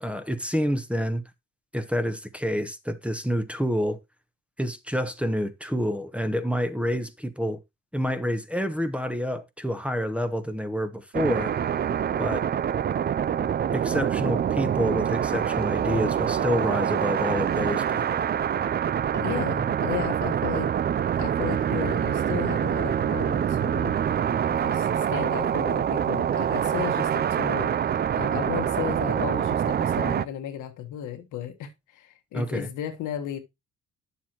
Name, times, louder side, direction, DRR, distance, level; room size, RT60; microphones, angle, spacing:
voice 1, 0.0-1.2 1.7-4.0 4.6-7.6 7.9-11.5 12.2-12.5 13.7-18.2 32.3-32.7, equal, 5° right, 1.0 m, -28 dB
sound 1, 11.1-30.3, right 9 dB, 35° right, 0.4 m, -25 dB
voice 2, 19.1-20.7 21.2-24.0 24.5-33.4, left 10 dB, 85° left, 1.5 m, -34 dB
9.4 x 7.1 x 2.9 m
cardioid pair, 90°, 30 cm